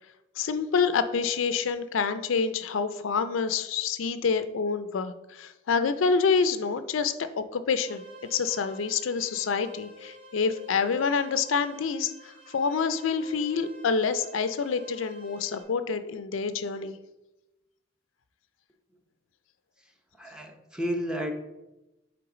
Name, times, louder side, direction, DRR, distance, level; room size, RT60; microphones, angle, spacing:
voice 1, 0.4-16.9, left 5 dB, 80° left, 11 dB, 0.5 m, -27 dB
sound 1, 7.7-15.6, equal, 60° right, 1.7 m, -50 dB
voice 2, 20.1-21.3, equal, 5° right, 3 dB, 0.7 m, -32 dB
7.8 x 3.4 x 5.0 m, 0.98 s
head